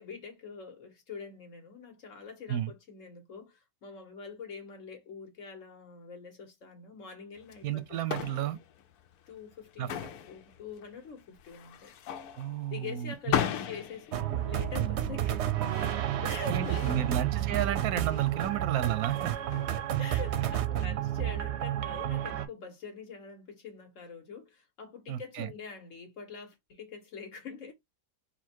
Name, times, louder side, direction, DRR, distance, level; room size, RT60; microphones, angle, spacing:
voice 1, 0.0-8.0 8.3-8.4 9.3-12.0 12.7-15.6 16.2-17.2 20.0-27.7, left 5 dB, 60° left, 1.6 m, -44 dB
sound 1, 7.4-20.4, left 9 dB, 90° left, 1.1 m, -38 dB
voice 2, 7.6-8.6 9.8-9.9 12.4-13.1 16.5-19.3 25.1-25.5, right 10 dB, 85° right, 1.1 m, -32 dB
sound 2, 14.1-22.5, right 12 dB, 60° right, 0.8 m, -31 dB
4.3 x 2.2 x 4.4 m
omnidirectional pair, 1.5 m